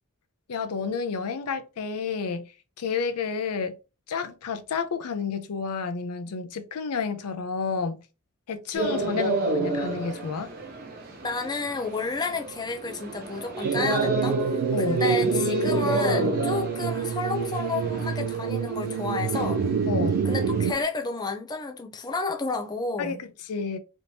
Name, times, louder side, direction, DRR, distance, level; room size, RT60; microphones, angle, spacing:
voice 1, 0.5-2.4 2.8-3.8 4.1-8.0 8.5-10.5 14.7-15.0 19.9-20.2 23.0-23.8, left 5 dB, 85° left, 0.5 m, -30 dB
sound 1, 8.7-20.8, right 1 dB, 45° right, 0.9 m, -30 dB
voice 2, 11.2-19.7 20.2-23.2, left 3 dB, 20° left, 0.4 m, -31 dB
sound 2, 13.6-20.7, right 6 dB, 90° right, 0.3 m, -27 dB
3.4 x 2.9 x 2.7 m
head